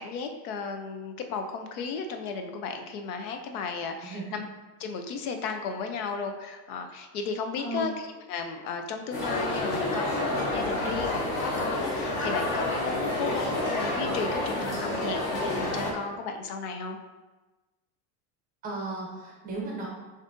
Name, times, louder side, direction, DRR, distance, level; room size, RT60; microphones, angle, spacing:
voice 1, 0.0-4.5 4.8-17.0, left 5 dB, 70° left, 5 dB, 0.7 m, -34 dB
voice 2, 7.6-7.9 10.8-10.9 18.6-19.9, right 2 dB, 20° right, -3 dB, 0.6 m, -35 dB
sound 1, 9.1-15.9, left 1 dB, 25° left, 0.6 m, -29 dB
6.9 x 2.7 x 2.6 m, 1.2 s
supercardioid pair, 170°, 46 cm